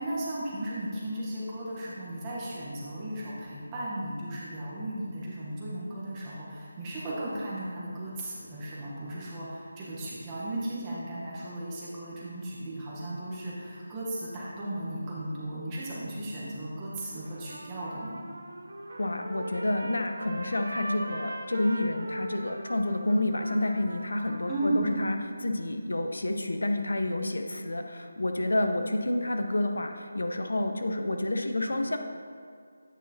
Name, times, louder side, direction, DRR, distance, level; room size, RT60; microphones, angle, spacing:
voice 1, 0.0-18.2 24.5-24.9, right 1 dB, 10° right, -7 dB, 1.0 m, -35 dB
Trumpet, 17.2-24.9, right 1 dB, 60° right, 1.0 m, -40 dB
voice 2, 19.0-32.0, left 1 dB, 80° left, 5 dB, 0.7 m, -29 dB
9.0 x 5.8 x 2.8 m, 2.3 s
figure-of-eight pair, 175°, 0 cm